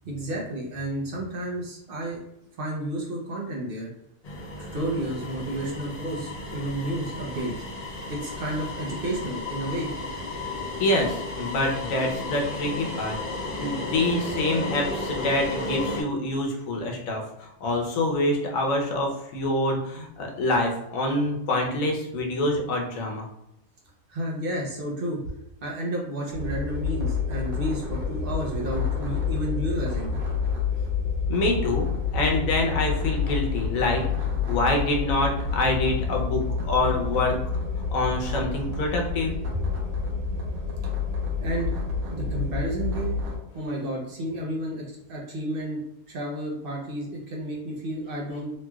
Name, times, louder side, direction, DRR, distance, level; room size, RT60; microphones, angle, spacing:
voice 1, 0.0-2.2 2.6-3.9 4.6-7.5 8.1-9.9 24.1-25.2 25.6-30.2 41.4-41.7 42.1-43.2 43.5-45.8 46.1-48.5, right 1 dB, 55° right, -2 dB, 0.7 m, -31 dB
sound 1, 4.2-16.0, left 2 dB, 90° left, 0.3 m, -34 dB
voice 2, 10.8-13.2 13.6-23.3 31.3-34.0 34.5-37.4 37.9-39.4, left 2 dB, 70° left, 1 dB, 1.1 m, -26 dB
sound 2, 26.3-43.4, left 5 dB, 85° right, 1.3 m, -28 dB
3.1 x 3.0 x 2.3 m, 0.82 s
omnidirectional pair, 1.5 m